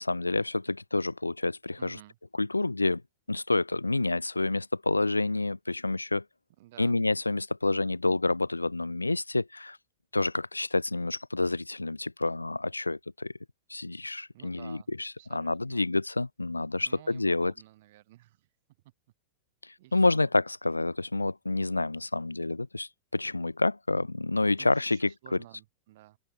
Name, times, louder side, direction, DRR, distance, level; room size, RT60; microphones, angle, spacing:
voice 1, 0.0-2.0 2.4-3.0 3.3-6.2 6.8-9.8 10.1-13.3 13.7-17.5 19.6-25.4, left 2 dB, 85° left, 0.5 m, -28 dB
voice 2, 1.8-2.2 6.6-7.0 14.3-14.9 15.2-15.9 16.8-18.5 19.8-20.3 24.6-26.2, right 16 dB, 55° right, 2.1 m, -53 dB
open air
figure-of-eight pair, 90°, 0 cm